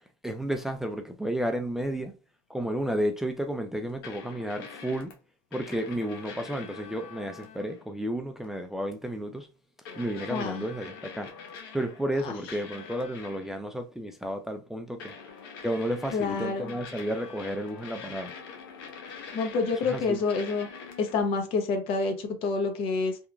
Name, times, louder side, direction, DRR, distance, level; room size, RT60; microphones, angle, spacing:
voice 1, 0.2-2.1 2.5-5.1 5.5-9.5 10.0-11.3 11.7-15.1 15.6-18.3 19.8-20.2, right 1 dB, 5° right, 0.3 m, -32 dB
sound 1, 4.0-5.1 5.5-7.8 8.4-8.6 9.8-12.2 12.5-13.6 15.0-21.2, left 5 dB, 90° left, 0.7 m, -44 dB
voice 2, 10.3-10.6 12.2-12.4 16.1-16.7 19.3-20.7 21.0-23.2, left 4 dB, 60° left, 0.8 m, -28 dB
2.9 x 2.4 x 2.3 m
supercardioid pair, 100°, 11 cm